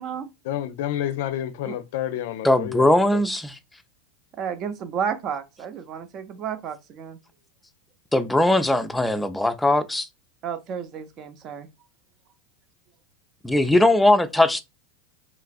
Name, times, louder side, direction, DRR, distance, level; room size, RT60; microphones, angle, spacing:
voice 1, 0.4-3.2, left 11 dB, 65° left, 0.4 m, -29 dB
voice 2, 2.4-3.6 8.1-10.1 13.4-14.6, left 1 dB, 5° left, 0.4 m, -20 dB
voice 3, 4.4-7.2 10.4-11.7, right 7 dB, 40° right, 0.5 m, -32 dB
3.0 x 2.4 x 2.4 m
hypercardioid pair, 100°, 0 cm